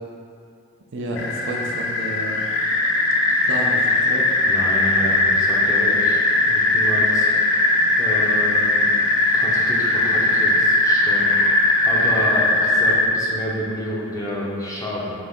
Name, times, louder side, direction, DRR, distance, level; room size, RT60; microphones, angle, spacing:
voice 1, 0.9-2.4 3.4-4.3, right 1 dB, 60° right, -1 dB, 0.5 m, -30 dB
sound 1, 1.2-13.1, left 2 dB, 65° left, 0.4 m, -19 dB
voice 2, 4.4-7.3 8.0-8.9 9.3-11.3 11.8-15.1, equal, 15° left, -6 dB, 0.7 m, -29 dB
3.9 x 3.2 x 3.5 m, 2.4 s
head